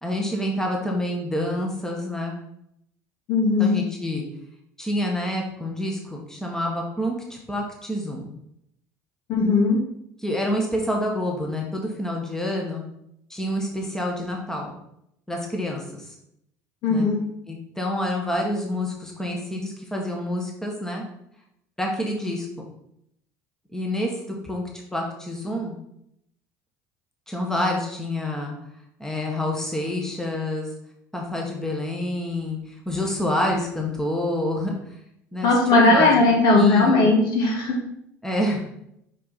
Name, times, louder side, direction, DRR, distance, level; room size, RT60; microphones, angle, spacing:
voice 1, 0.0-2.4 3.6-4.2 4.8-8.2 10.2-12.8 13.3-14.8 15.3-16.1 16.9-17.1 17.5-21.0 21.8-22.5 23.7-24.6 24.9-25.7 27.3-28.5 29.0-30.7 31.1-34.7 35.3-36.1 36.5-37.1 38.2-38.6, left 1 dB, 5° left, 0 dB, 1.6 m, -27 dB
voice 2, 3.3-3.8 9.3-9.8 16.8-17.2 35.4-37.8, left 3 dB, 60° left, -1 dB, 2.1 m, -18 dB
5.3 x 5.1 x 4.3 m, 0.76 s
hypercardioid pair, 75°, 8 cm